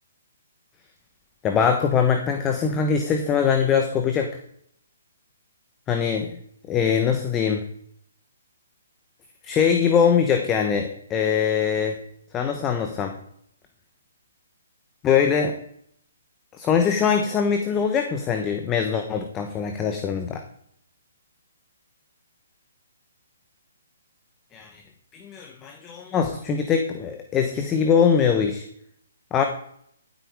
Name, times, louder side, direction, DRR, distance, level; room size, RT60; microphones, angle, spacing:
voice 1, 1.4-4.3 5.9-6.3 6.7-7.6 9.4-12.0 12.3-13.2 15.0-15.6 16.6-20.4 24.5-24.8 25.1-28.7 29.3-29.4, left 7 dB, 15° left, 5 dB, 1.1 m, -22 dB
14.5 x 8.3 x 4.8 m, 0.68 s
hypercardioid pair, 155°, 0 cm